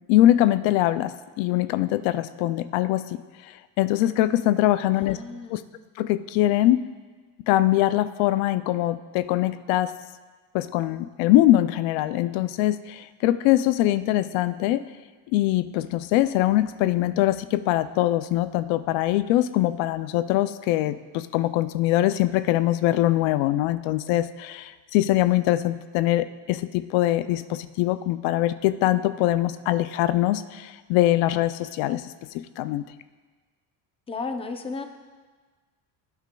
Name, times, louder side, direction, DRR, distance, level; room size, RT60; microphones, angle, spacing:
voice 1, 0.1-3.2 3.8-5.2 5.5-5.6 6.0-6.8 7.5-9.9 10.5-14.8 15.3-32.1 32.3-32.8, left 14 dB, 90° left, 13 dB, 0.5 m, -22 dB
voice 2, 4.9-5.7 34.1-34.8, left 4 dB, 15° left, 6 dB, 0.5 m, -34 dB
16.0 x 8.2 x 2.3 m, 1.4 s
cardioid pair, 115°, 45 cm